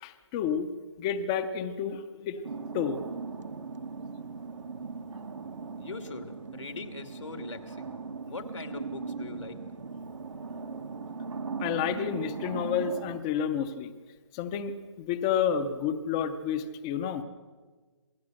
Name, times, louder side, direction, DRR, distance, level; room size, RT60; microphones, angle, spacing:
voice 1, 0.0-0.7 1.0-2.5 2.7-3.0 11.6-13.9 14.3-17.2, left 8 dB, 10° left, 11 dB, 0.5 m, -30 dB
sound 1, 2.4-13.2, right 4 dB, 90° right, 1.5 m, -39 dB
voice 2, 5.8-8.0 8.3-9.6, left 3 dB, 85° left, 7 dB, 2.7 m, -41 dB
27.0 x 16.5 x 6.4 m, 1.4 s
hypercardioid pair, 170°, 15 cm